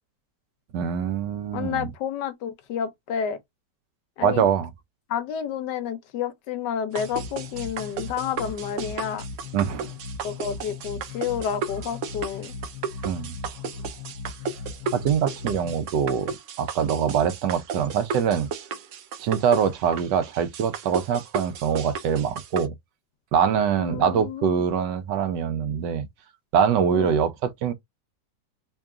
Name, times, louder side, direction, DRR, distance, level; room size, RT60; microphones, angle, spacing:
voice 1, 0.7-1.9 4.2-4.7 9.5-9.9 13.0-13.3 14.9-18.5 19.2-22.7 23.3-26.1 26.5-27.7, right 7 dB, 90° right, 1.3 m, -24 dB
voice 2, 1.5-3.4 4.2-4.4 5.1-9.2 10.2-12.5 23.8-24.6 26.9-27.2, left 8 dB, 85° left, 1.4 m, -30 dB
sound 1, 7.0-15.8, left 4 dB, 65° left, 1.0 m, -38 dB
sound 2, 7.0-22.7, right 6 dB, 65° right, 0.8 m, -35 dB
3.5 x 2.3 x 3.6 m
omnidirectional pair, 1.8 m